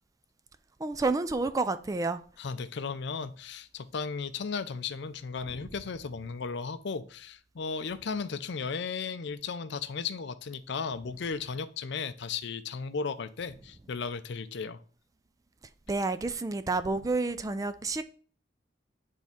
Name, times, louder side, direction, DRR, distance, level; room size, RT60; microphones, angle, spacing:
voice 1, 0.8-2.2 15.9-18.0, right 3 dB, 20° right, 0.3 m, -29 dB
voice 2, 2.4-14.8, left 5 dB, 65° left, 0.5 m, -35 dB
8.2 x 3.6 x 4.2 m
head